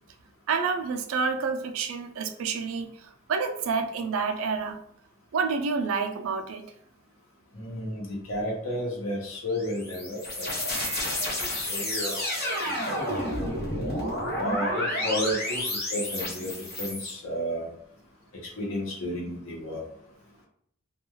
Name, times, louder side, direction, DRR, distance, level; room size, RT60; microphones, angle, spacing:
voice 1, 0.5-2.9 3.3-4.8 5.3-6.7 10.7-11.0, right 5 dB, 75° right, 7 dB, 0.4 m, -28 dB
voice 2, 7.6-10.6 11.1-11.3 11.7-12.5 13.1-13.6 14.4-15.6 15.9-16.5 16.8-17.7 18.6-19.8, equal, 70° left, -1 dB, 0.9 m, -32 dB
sound 1, 9.5-17.1, left 1 dB, 50° left, 1.0 m, -30 dB
2.3 x 2.3 x 3.0 m, 0.67 s
head